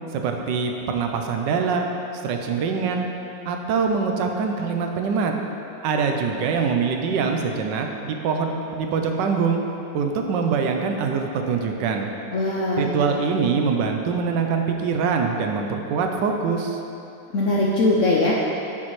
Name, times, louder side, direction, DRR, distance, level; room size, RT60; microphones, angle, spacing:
voice 1, 0.1-1.9 2.2-3.1 3.5-5.3 5.8-9.6 9.9-12.1 12.8-16.8, right 5 dB, 75° right, 3 dB, 1.3 m, -24 dB
voice 2, 12.3-13.0 17.3-18.3, left 2 dB, 60° left, -4 dB, 0.8 m, -21 dB
9.7 x 6.3 x 3.1 m, 2.8 s
omnidirectional pair, 2.0 m